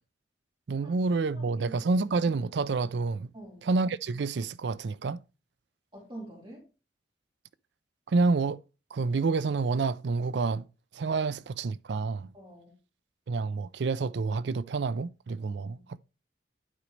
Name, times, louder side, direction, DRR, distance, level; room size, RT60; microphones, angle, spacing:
voice 1, 0.7-3.3 3.6-5.2 8.1-8.6 8.9-10.7 10.9-12.3 13.3-16.0, right 4 dB, 70° right, 0.4 m, -28 dB
voice 2, 1.3-1.8 3.3-3.7 5.9-6.7 12.3-12.8 15.6-15.9, right 1 dB, 30° right, 3.6 m, -46 dB
11.5 x 5.1 x 3.2 m
head